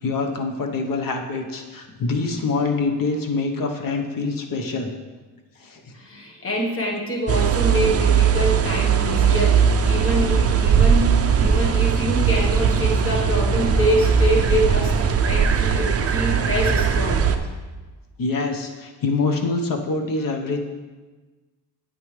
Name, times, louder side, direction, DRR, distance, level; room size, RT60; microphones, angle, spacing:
voice 1, 0.0-4.9 5.6-5.9 18.2-20.6, left 3 dB, 50° left, 4 dB, 1.1 m, -25 dB
voice 2, 5.9-17.2, equal, 30° left, -1 dB, 1.3 m, -25 dB
sound 1, 7.3-17.4, right 6 dB, 35° right, 0.5 m, -19 dB
9.0 x 8.7 x 3.3 m, 1.3 s
cardioid pair, 145°, 43 cm